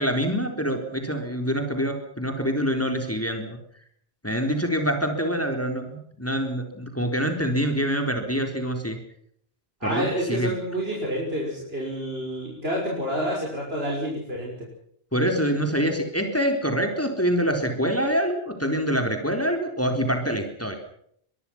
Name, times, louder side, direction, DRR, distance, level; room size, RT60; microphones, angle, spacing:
voice 1, 0.0-3.6 4.2-9.0 9.8-10.6 15.1-20.8, equal, 15° left, 4 dB, 3.9 m, -25 dB
voice 2, 9.8-14.7, equal, 75° right, -2 dB, 6.2 m, -28 dB
24.0 x 23.0 x 5.9 m, 0.67 s
omnidirectional pair, 1.0 m